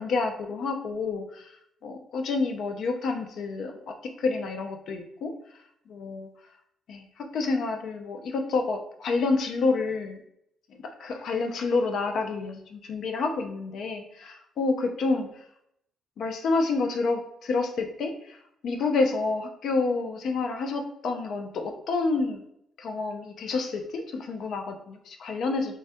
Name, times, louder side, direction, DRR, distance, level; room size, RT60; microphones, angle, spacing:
voice 1, 0.0-1.5 1.8-5.3 5.9-6.3 6.9-10.2 10.7-15.3 16.2-18.4 18.6-22.4 22.8-25.8, left 3 dB, 70° left, 5 dB, 0.4 m, -29 dB
3.3 x 2.1 x 2.6 m, 0.75 s
cardioid pair, 90°, 0 cm